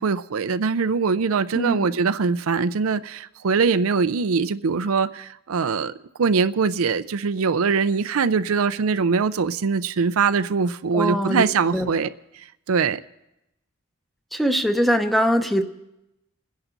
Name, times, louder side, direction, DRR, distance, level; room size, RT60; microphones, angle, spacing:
voice 1, 0.0-5.9 6.2-12.1 12.7-13.0, right 5 dB, 75° right, 0.5 m, -22 dB
voice 2, 1.5-1.9 10.9-11.4 11.7-11.9 14.3-15.6, equal, ahead, 0.8 m, -21 dB
28.0 x 10.5 x 4.0 m
head